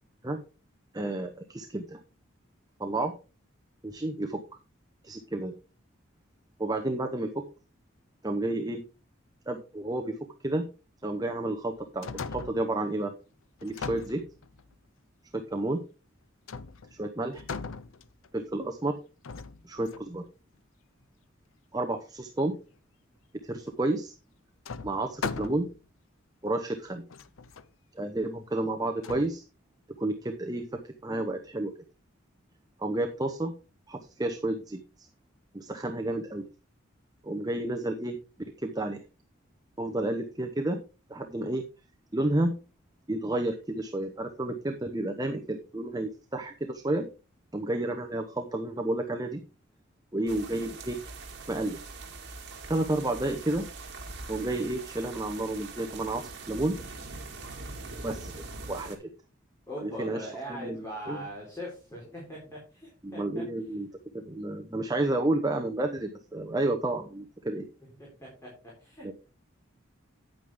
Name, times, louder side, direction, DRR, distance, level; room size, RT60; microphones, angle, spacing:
voice 1, 0.9-2.0 2.8-3.1 3.8-4.4 5.0-5.6 6.6-7.4 8.2-8.8 9.5-10.2 10.4-10.7 11.0-13.1 13.6-14.2 15.3-15.8 16.9-17.4 18.3-19.0 19.6-20.2 21.7-22.5 23.4-24.1 24.8-25.7 26.4-27.0 27.9-29.4 30.0-31.7 32.8-33.5 33.9-35.1 35.5-36.5 37.2-38.2 38.6-39.0 39.8-40.8 41.1-41.7 42.1-42.6 43.1-47.1 47.5-49.4 50.1-51.0 51.5-51.8 52.7-53.7 54.3-56.8 58.0-59.1 59.8-61.2 63.0-63.9 64.1-67.7 69.0-69.1, right 2 dB, 20° right, 5 dB, 0.8 m, -31 dB
sound 1, 11.7-12.8 13.6-14.7 16.5-17.0 17.3-18.4 19.2-20.2 23.7-23.8 24.7-25.8 26.5-26.6 27.1-27.7 29.0-29.3, left 5 dB, 80° left, 0.7 m, -39 dB
sound 2, 50.3-58.9, right 3 dB, 55° right, 2.3 m, -42 dB
voice 2, 59.7-63.5 68.0-68.5 68.8-69.1, equal, 15° left, -4 dB, 4.0 m, -41 dB
9.6 x 9.0 x 3.6 m, 0.32 s
head